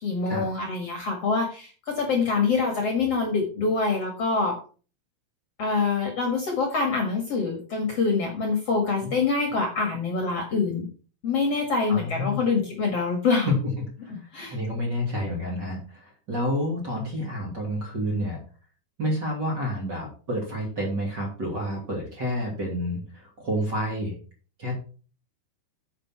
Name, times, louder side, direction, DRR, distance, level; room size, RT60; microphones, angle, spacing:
voice 1, 0.0-4.5 5.6-10.9 11.2-13.5 14.1-14.6, left 4 dB, 50° left, 2 dB, 2.3 m, -25 dB
voice 2, 11.9-12.5 13.5-13.6 14.0-14.1 14.5-18.4 19.0-24.2 24.6-24.7, equal, 30° right, -1 dB, 2.8 m, -29 dB
10.0 x 6.7 x 4.5 m, 0.38 s
omnidirectional pair, 4.5 m